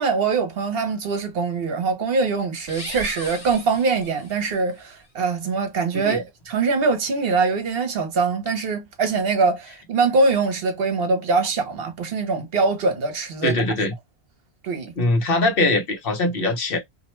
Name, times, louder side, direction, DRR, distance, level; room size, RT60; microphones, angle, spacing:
voice 1, 0.0-13.5 14.6-14.9, right 4 dB, 65° right, 0.9 m, -23 dB
sound 1, 2.6-4.6, left 1 dB, 35° left, 1.1 m, -37 dB
voice 2, 13.4-13.9 15.0-16.8, left 2 dB, 60° left, 1.0 m, -22 dB
2.5 x 2.1 x 3.0 m
omnidirectional pair, 1.1 m